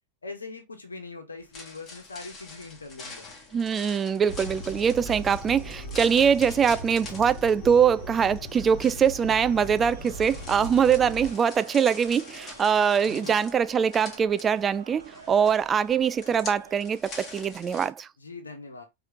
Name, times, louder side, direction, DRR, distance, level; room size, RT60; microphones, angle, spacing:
voice 1, 0.2-3.3 13.1-13.3 18.2-18.8, left 3 dB, 75° left, 1.3 m, -41 dB
sound 1, 1.4-17.9, left 3 dB, 25° left, 1.5 m, -45 dB
voice 2, 3.5-18.1, right 7 dB, 20° right, 0.3 m, -23 dB
sound 2, 4.3-11.3, equal, 45° left, 1.8 m, -39 dB
Crowd, 9.0-17.1, right 5 dB, 70° right, 0.8 m, -49 dB
4.7 x 3.1 x 2.9 m
figure-of-eight pair, 90°, 0 cm